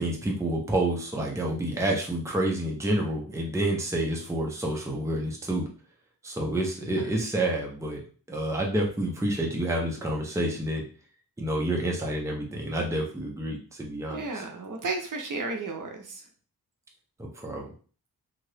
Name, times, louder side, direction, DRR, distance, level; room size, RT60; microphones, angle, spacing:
voice 1, 0.0-5.7 6.2-8.0 8.3-10.8 11.4-14.4 17.2-17.7, right 1 dB, 10° right, -1 dB, 0.6 m, -29 dB
voice 2, 14.1-16.2, right 3 dB, 55° right, 2 dB, 0.7 m, -33 dB
2.7 x 2.5 x 3.3 m, 0.41 s
wide cardioid pair, 105°, 38 cm